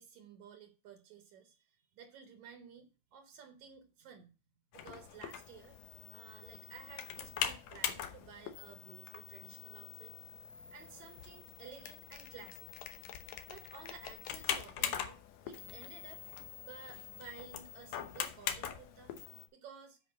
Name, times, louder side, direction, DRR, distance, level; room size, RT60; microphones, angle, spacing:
voice 1, 0.0-4.3 4.7-5.8 6.1-10.1 10.7-12.7 13.5-15.2 15.4-16.2 16.6-19.1 19.5-20.0, right 7 dB, 70° right, 7 dB, 2.5 m, -54 dB
sound 1, 4.7-19.5, left 9 dB, 70° left, 2.0 m, -42 dB
7.7 x 5.1 x 7.2 m, 0.33 s
omnidirectional pair, 3.5 m